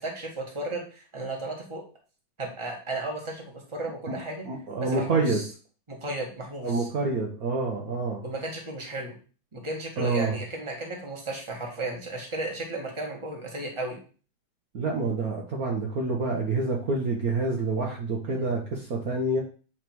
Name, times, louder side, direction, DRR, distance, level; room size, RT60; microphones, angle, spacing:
voice 1, 0.0-1.8 2.4-4.4 4.8-5.4 5.9-6.9 8.2-9.1 9.5-14.0 18.3-18.5, right 2 dB, 15° right, 0 dB, 1.7 m, -34 dB
voice 2, 4.4-5.4 6.6-8.2 10.0-10.3 14.7-19.4, right 3 dB, 55° right, -1 dB, 1.5 m, -27 dB
9.5 x 3.4 x 4.6 m, 0.38 s
omnidirectional pair, 2.1 m